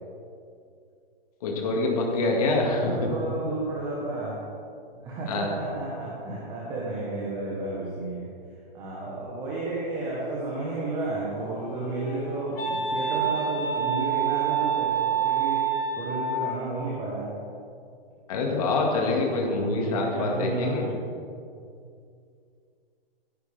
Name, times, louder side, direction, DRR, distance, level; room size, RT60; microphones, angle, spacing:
voice 1, 1.4-3.1 5.3-5.5 18.3-20.9, left 3 dB, 40° left, 0 dB, 1.9 m, -25 dB
voice 2, 2.7-4.4 5.0-8.3 8.7-17.3 19.3-20.9, right 2 dB, 15° right, -5 dB, 1.1 m, -32 dB
Wind instrument woodwind instrument, 11.2-16.6, right 7 dB, 70° left, 2.6 m, -28 dB
14.5 x 10.0 x 3.4 m, 2.4 s
hypercardioid pair, 165°, 30 cm